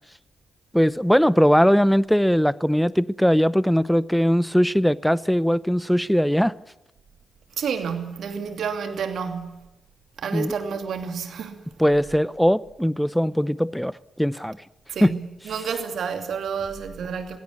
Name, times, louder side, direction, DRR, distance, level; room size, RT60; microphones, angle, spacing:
voice 1, 0.7-6.6 10.3-10.5 11.8-14.6 15.0-15.1, equal, ahead, 0.7 m, -20 dB
voice 2, 7.6-9.7 10.2-11.6 14.9-15.2 15.5-17.4, right 6 dB, 60° right, 2.7 m, -29 dB
23.0 x 17.0 x 9.6 m
hypercardioid pair, 40°, 0 cm